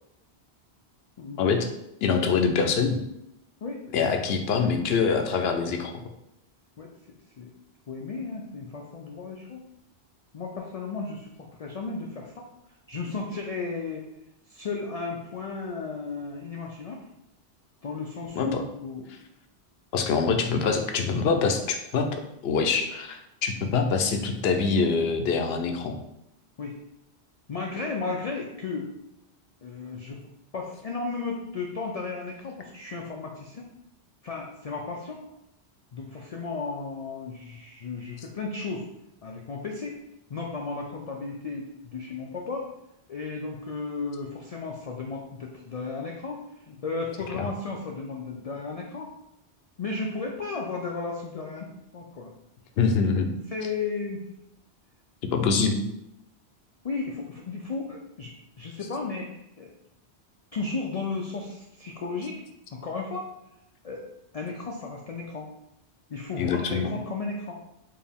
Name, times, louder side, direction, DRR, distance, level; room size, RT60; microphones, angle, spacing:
voice 1, 1.4-1.7 2.0-3.0 3.9-5.9 18.3-18.6 19.9-22.1 22.4-26.0 47.3-47.5 52.8-53.3 55.2-55.8 66.4-66.9, left 5 dB, 70° left, 5 dB, 0.8 m, -24 dB
voice 2, 7.9-9.6 10.3-12.5 12.9-14.0 14.5-17.0 17.8-19.2 26.6-26.8 27.5-28.9 29.6-30.2 30.5-33.7 34.2-35.3 35.9-38.9 39.2-40.0 40.3-42.7 43.1-49.1 49.8-52.3 53.5-54.2 56.8-59.7 60.5-62.4 62.7-63.3 63.8-64.1 64.3-65.5 66.1-67.5, left 4 dB, 55° left, 0 dB, 0.4 m, -34 dB
4.5 x 2.7 x 3.5 m, 0.82 s
omnidirectional pair, 1.1 m